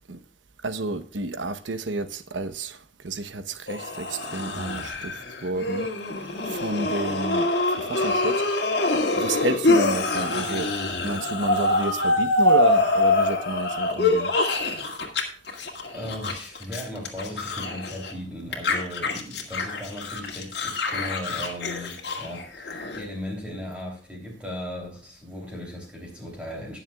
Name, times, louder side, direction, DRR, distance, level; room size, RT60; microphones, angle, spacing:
voice 1, 0.6-2.8 3.0-5.2 5.4-5.9 6.5-8.7 9.1-10.7 11.0-14.3, right 2 dB, 85° right, 1.0 m, -30 dB
sound 1, 3.7-15.2 15.5-18.1 18.5-23.0, left 2 dB, 60° left, 2.1 m, -25 dB
voice 2, 15.9-26.8, left 1 dB, 5° right, 3.0 m, -37 dB
19.5 x 7.1 x 2.3 m
head